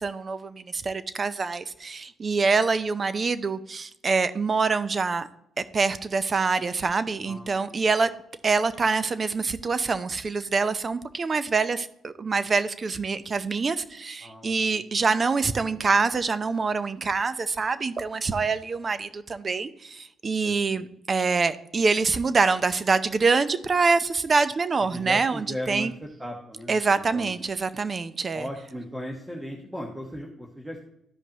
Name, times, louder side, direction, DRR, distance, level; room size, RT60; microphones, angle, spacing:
voice 1, 0.0-5.3 5.6-8.1 8.4-25.9 26.7-28.5, right 4 dB, 35° right, 14 dB, 0.6 m, -25 dB
voice 2, 7.2-7.8 14.2-14.8 20.4-20.8 24.9-25.9 26.2-26.8 27.1-27.3 28.3-30.9, equal, 10° right, 0 dB, 1.2 m, -37 dB
13.5 x 5.2 x 2.9 m, 0.75 s
cardioid pair, 90°, 0 cm